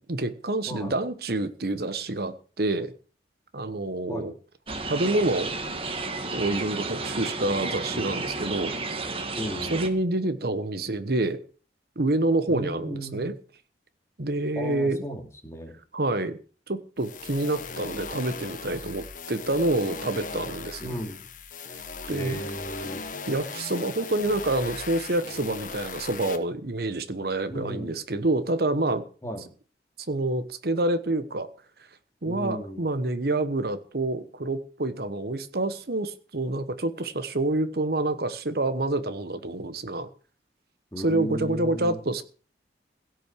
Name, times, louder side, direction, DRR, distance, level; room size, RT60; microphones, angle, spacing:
voice 1, 0.0-2.9 3.5-4.3 4.9-5.5 6.3-8.7 9.7-11.4 12.0-13.3 14.2-15.0 15.9-16.4 16.7-21.0 22.1-22.4 23.3-29.0 30.1-31.5 32.2-40.1 41.0-42.2, right 2 dB, 60° right, 1.1 m, -27 dB
sound 1, 4.7-9.9, right 3 dB, 30° right, 1.7 m, -32 dB
voice 2, 9.3-10.0 12.5-13.3 14.6-15.8 20.8-21.2 22.1-23.0 27.5-27.9 29.2-29.4 32.2-32.8 40.9-42.0, equal, 15° left, 2.8 m, -35 dB
sound 2, 17.0-26.4, left 4 dB, 45° left, 1.5 m, -38 dB
17.0 x 6.3 x 8.2 m
head